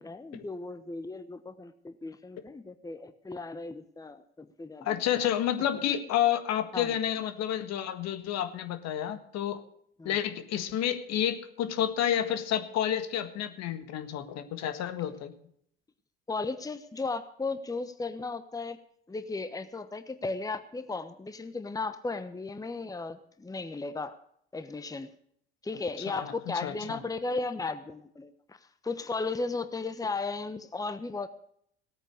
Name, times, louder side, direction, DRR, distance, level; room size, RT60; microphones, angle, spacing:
voice 1, 0.0-5.0 6.7-6.9 10.0-10.2 16.3-18.8 19.1-24.2 24.5-25.1 25.6-28.6 28.8-31.3, left 3 dB, 10° left, 11 dB, 1.1 m, -35 dB
voice 2, 4.8-9.6 10.1-15.3 26.1-26.3 26.6-27.0, left 10 dB, 60° left, 9 dB, 1.7 m, -30 dB
17.0 x 9.0 x 6.5 m, 0.67 s
hypercardioid pair, 65°, 30 cm